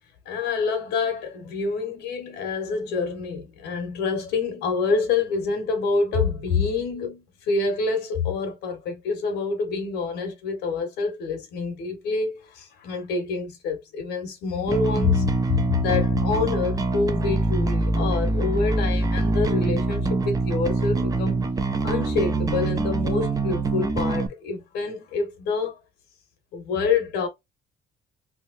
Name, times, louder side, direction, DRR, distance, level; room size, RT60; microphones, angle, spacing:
voice 1, 0.2-21.4 21.8-25.8 26.5-27.3, left 4 dB, 80° left, 1.5 m, -27 dB
Bass guitar, 14.7-24.3, right 3 dB, 20° right, 0.6 m, -24 dB
3.3 x 3.1 x 2.6 m
cardioid pair, 110°, 17 cm